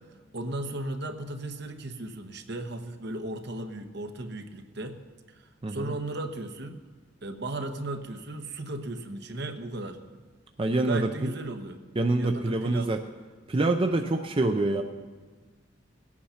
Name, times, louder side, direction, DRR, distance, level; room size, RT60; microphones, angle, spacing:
voice 1, 0.3-5.0 5.3-6.8 7.2-10.0 10.7-11.8 12.2-12.9, right 2 dB, 60° right, 6 dB, 1.1 m, -36 dB
voice 2, 10.6-11.3 12.0-13.0 13.5-14.8, right 2 dB, 25° right, 5 dB, 0.5 m, -26 dB
18.5 x 8.6 x 5.7 m, 1.4 s
head